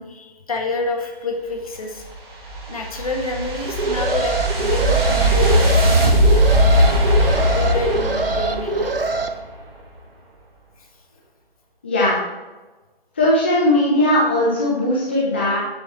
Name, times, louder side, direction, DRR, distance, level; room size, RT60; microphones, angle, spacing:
voice 1, 0.0-2.1 2.7-7.0 7.5-9.1 10.8-10.9, left 3 dB, 35° left, 2 dB, 1.8 m, -28 dB
sound 1, 2.0-9.3, equal, 25° right, 2.3 m, -19 dB
Alarm, 3.6-9.3, right 3 dB, 70° right, 1.1 m, -24 dB
voice 2, 11.8-12.2 13.2-15.6, left 1 dB, 10° left, -5 dB, 0.6 m, -18 dB
11.0 x 7.6 x 4.5 m, 1.2 s
figure-of-eight pair, 150°, 30 cm